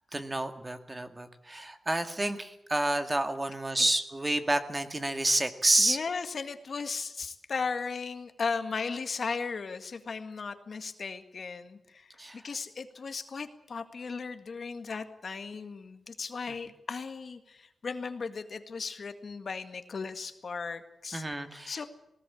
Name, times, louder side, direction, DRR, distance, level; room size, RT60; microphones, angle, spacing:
voice 1, 0.1-6.0 12.2-12.4 21.1-21.9, right 1 dB, 20° right, 7 dB, 2.0 m, -29 dB
voice 2, 5.8-21.2 21.7-21.9, left 5 dB, 55° left, 8 dB, 1.8 m, -36 dB
19.0 x 19.0 x 8.6 m, 0.82 s
cardioid pair, 85°, 0 cm